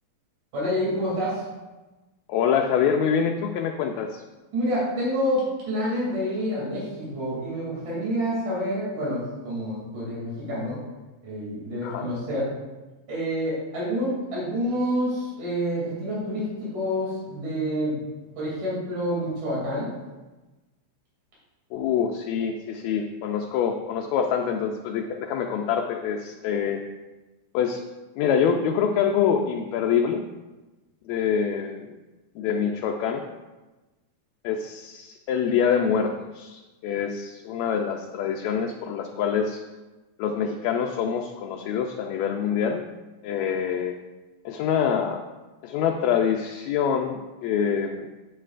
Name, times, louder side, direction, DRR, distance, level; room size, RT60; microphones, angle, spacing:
voice 1, 0.5-1.4 4.5-10.8 11.2-12.5 13.1-18.0 18.4-19.9, equal, 85° right, -7 dB, 4.3 m, -28 dB
voice 2, 2.3-4.2 11.8-12.1 21.7-26.8 27.5-27.8 28.2-30.2 31.1-31.9 32.4-33.2 34.4-39.6 40.2-42.9 43.2-44.0 44.5-45.3 45.6-48.1, left 7 dB, 80° left, 3 dB, 1.8 m, -25 dB
9.9 x 8.7 x 2.5 m, 1.1 s
omnidirectional pair, 3.4 m